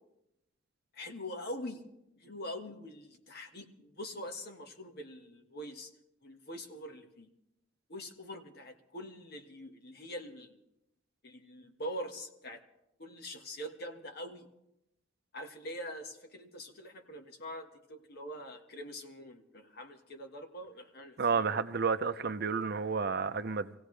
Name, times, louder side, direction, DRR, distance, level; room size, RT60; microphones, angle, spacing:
voice 1, 0.9-1.8 2.2-5.9 6.2-7.3 7.9-10.6 11.2-12.6 13.0-14.5 15.3-21.6, equal, 55° left, 1.6 m, -44 dB
voice 2, 21.2-23.7, right 5 dB, 55° right, 0.6 m, -31 dB
25.5 x 16.5 x 3.3 m
head